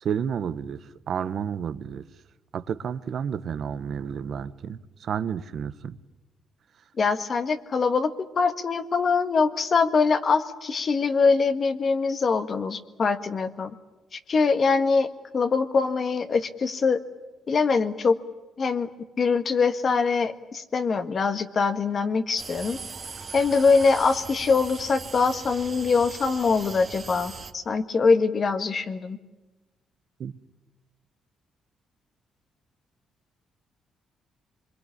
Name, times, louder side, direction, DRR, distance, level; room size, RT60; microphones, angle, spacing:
voice 1, 0.0-0.8 1.1-2.0 2.5-6.0 30.2-30.3, right 7 dB, 60° right, 13 dB, 1.1 m, -31 dB
voice 2, 7.0-13.7 14.3-15.1 15.3-17.0 17.5-18.2 18.6-18.9 19.2-22.8 23.3-29.2, left 4 dB, 45° left, 8 dB, 1.7 m, -23 dB
sound 1, 22.4-27.5, right 4 dB, 40° right, 1.9 m, -39 dB
25.0 x 22.5 x 10.0 m, 1.1 s
cardioid pair, 90°, 0 cm